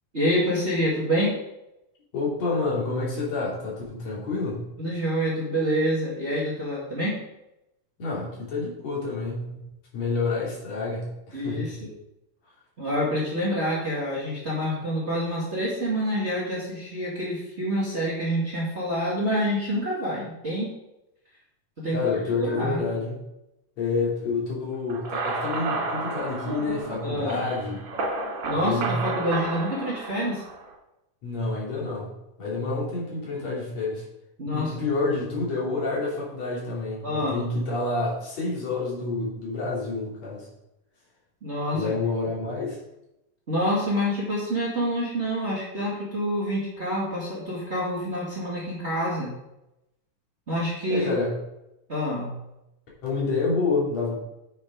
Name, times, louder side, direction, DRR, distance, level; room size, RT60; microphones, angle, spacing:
voice 1, 0.1-1.3 4.8-7.2 11.3-11.9 12.8-20.7 21.8-22.8 27.0-27.4 28.5-30.4 34.4-34.7 37.0-37.4 41.4-41.9 43.5-49.3 50.5-51.1 51.9-52.4, equal, 25° right, -6 dB, 2.2 m, -27 dB
voice 2, 2.1-4.6 8.0-9.6 9.9-11.7 21.9-23.2 23.8-27.8 28.5-29.0 31.2-32.1 32.4-34.0 34.5-40.5 41.7-42.8 50.9-51.3 53.0-54.2, left 3 dB, 55° left, -5 dB, 4.1 m, -28 dB
sound 1, 24.9-30.7, right 3 dB, 70° right, 3.4 m, -31 dB
8.3 x 6.5 x 5.2 m, 0.89 s
omnidirectional pair, 3.7 m